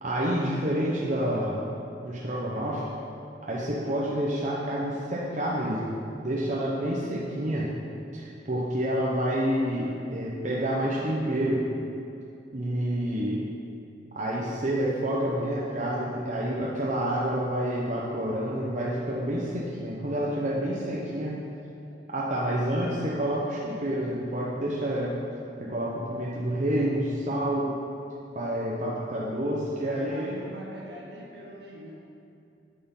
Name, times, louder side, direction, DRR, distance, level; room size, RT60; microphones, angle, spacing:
voice 1, 0.0-1.6 2.0-2.9 3.4-5.9 6.2-7.7 8.1-11.6 12.5-13.4 14.1-21.3 22.1-25.2 25.6-27.7 28.3-30.4, right 1 dB, 40° right, -5 dB, 1.0 m, -28 dB
voice 2, 27.2-27.7 29.8-31.9, right 1 dB, 65° right, -2 dB, 1.7 m, -43 dB
8.9 x 6.8 x 5.6 m, 2.6 s
head